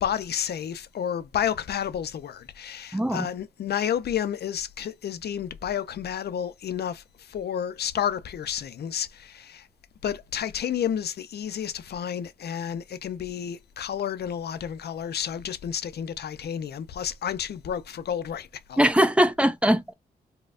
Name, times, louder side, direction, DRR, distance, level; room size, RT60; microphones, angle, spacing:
voice 1, 0.0-9.7 10.0-18.8, left 9 dB, 65° left, 0.6 m, -31 dB
voice 2, 2.9-3.3 18.8-19.9, equal, 5° right, 0.7 m, -21 dB
4.0 x 2.2 x 2.5 m
supercardioid pair, 50°, 18 cm